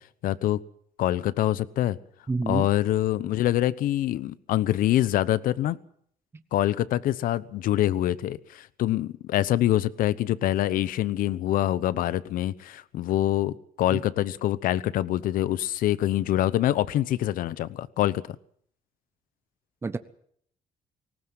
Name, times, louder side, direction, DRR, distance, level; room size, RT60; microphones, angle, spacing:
voice 1, 0.2-0.6 1.0-2.0 2.5-5.8 6.5-18.4, left 13 dB, 80° left, 17 dB, 1.0 m, -25 dB
voice 2, 2.3-2.7 13.9-14.0 19.8-20.0, right 3 dB, 15° right, 12 dB, 0.9 m, -28 dB
19.0 x 19.0 x 7.8 m, 0.63 s
cardioid pair, 145°, 14 cm